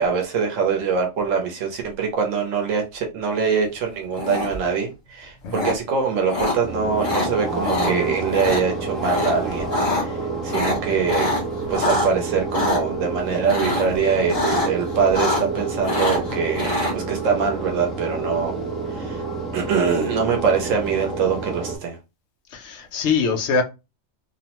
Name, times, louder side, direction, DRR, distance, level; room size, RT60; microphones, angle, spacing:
voice 1, 0.0-9.7 10.0-10.2 10.4-11.3 11.7-18.6 18.9-19.2 19.5-22.0, right 5 dB, 85° right, 1.0 m, -23 dB
sound 1, 4.2-4.7 5.5-5.7 6.3-6.5 7.0-7.3 7.6-7.9 8.3-8.6 9.0-9.3 9.6-10.0 10.5-12.1 12.5-12.8 13.5-13.9 14.3-14.7 15.0-15.6 15.8-16.9, left 2 dB, 30° left, 1.0 m, -24 dB
sound 2, 6.6-21.8, right 3 dB, ahead, 0.4 m, -29 dB
voice 2, 22.5-23.6, left 5 dB, 65° left, 0.9 m, -23 dB
2.8 x 2.0 x 2.8 m
omnidirectional pair, 1.3 m